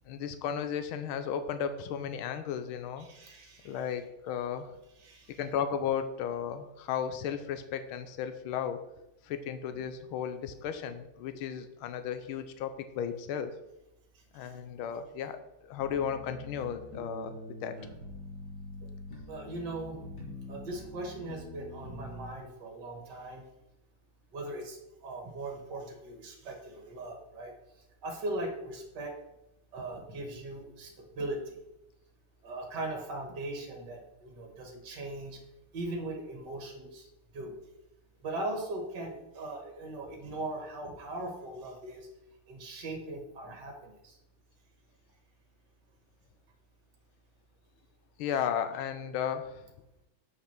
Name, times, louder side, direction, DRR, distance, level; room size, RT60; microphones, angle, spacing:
voice 1, 0.1-3.1 3.6-4.7 5.3-8.8 9.2-13.5 14.3-17.8 48.2-49.6, left 8 dB, 80° left, 10 dB, 1.6 m, -34 dB
voice 2, 3.0-3.8 5.0-5.4 14.4-14.5 19.3-23.5 24.3-27.5 28.0-29.1 29.7-31.6 32.4-35.4 35.7-37.1 37.3-37.5 38.2-42.1 42.5-44.2, right 2 dB, 60° right, 3 dB, 2.1 m, -39 dB
sound 1, 15.8-22.3, left 1 dB, 50° left, 3.0 m, -45 dB
7.9 x 5.8 x 5.9 m, 0.89 s
omnidirectional pair, 2.3 m